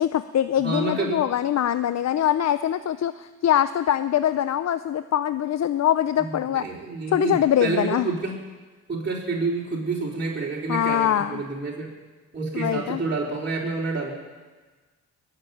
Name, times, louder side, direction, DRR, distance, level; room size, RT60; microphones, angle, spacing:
voice 1, 0.0-6.7 7.1-8.1 10.7-11.4 12.5-13.0, left 10 dB, 55° left, 12 dB, 0.6 m, -23 dB
voice 2, 0.6-1.2 6.2-8.4 8.9-11.9 12.3-14.1, right 3 dB, 35° right, -5 dB, 4.0 m, -28 dB
20.5 x 7.5 x 9.2 m, 1.3 s
cardioid pair, 65°, 31 cm